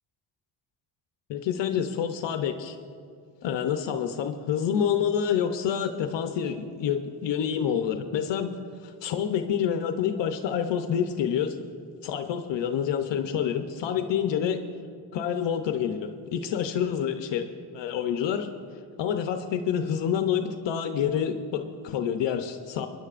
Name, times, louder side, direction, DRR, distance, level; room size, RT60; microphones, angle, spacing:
voice 1, 1.3-2.8 3.4-8.5 8.8-11.6 12.0-14.6 15.1-17.5 17.7-18.5 19.0-22.9, left 8 dB, 75° left, 6 dB, 0.7 m, -27 dB
26.5 x 10.5 x 2.5 m, 2.4 s
cardioid pair, 135°, 44 cm